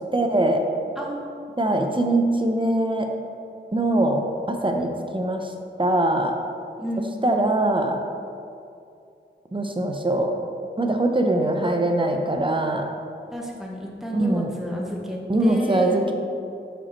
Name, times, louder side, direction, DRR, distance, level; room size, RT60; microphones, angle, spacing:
voice 1, 0.1-0.6 1.6-3.1 3.7-5.5 5.8-6.3 7.2-8.0 9.5-10.3 10.8-12.9 14.1-14.5 15.3-16.1, right 1 dB, 25° right, 3 dB, 0.7 m, -22 dB
voice 2, 1.0-1.5 6.8-7.5 11.6-11.8 13.3-16.0, equal, ahead, -3 dB, 1.2 m, -32 dB
5.5 x 5.1 x 4.4 m, 2.6 s
wide cardioid pair, 50°, 21 cm